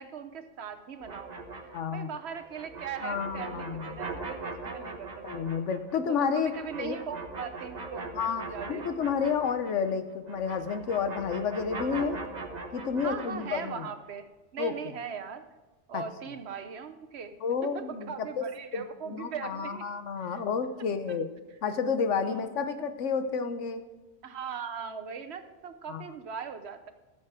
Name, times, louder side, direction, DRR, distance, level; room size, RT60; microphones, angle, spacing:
voice 1, 0.0-5.5 6.1-8.1 8.5-8.9 13.0-14.3 14.5-15.4 15.9-17.3 17.6-19.8 20.2-20.4 21.1-21.2 22.2-22.5 24.2-26.9, right 6 dB, 65° right, 9 dB, 1.1 m, -40 dB
sound 1, 1.0-10.0 10.2-13.9, right 3 dB, 40° right, 1.1 m, -41 dB
voice 2, 1.7-2.1 3.0-4.0 5.2-6.5 6.8-7.0 8.1-8.4 8.7-12.2 12.7-13.9 14.6-14.7 15.9-16.0 17.4-18.5 18.7-21.3 21.6-23.8 25.9-26.0, left 6 dB, 80° left, 9 dB, 1.2 m, -30 dB
14.0 x 7.3 x 4.8 m, 1.1 s
omnidirectional pair, 1.2 m